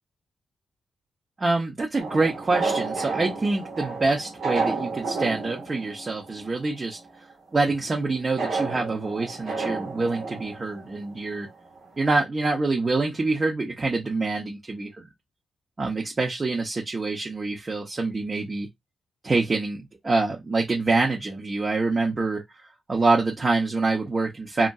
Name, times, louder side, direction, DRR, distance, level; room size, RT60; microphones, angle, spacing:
voice 1, 1.4-7.0 7.5-11.5 12.0-15.1 15.8-18.7 19.2-22.4 22.9-24.7, right 3 dB, 35° right, 0.7 m, -25 dB
sound 1, 2.0-6.7 7.0-7.1 8.4-11.3 11.8-11.9 12.0-12.2, right 4 dB, 80° right, 1.0 m, -31 dB
2.8 x 2.6 x 2.3 m
cardioid pair, 90°, 0 cm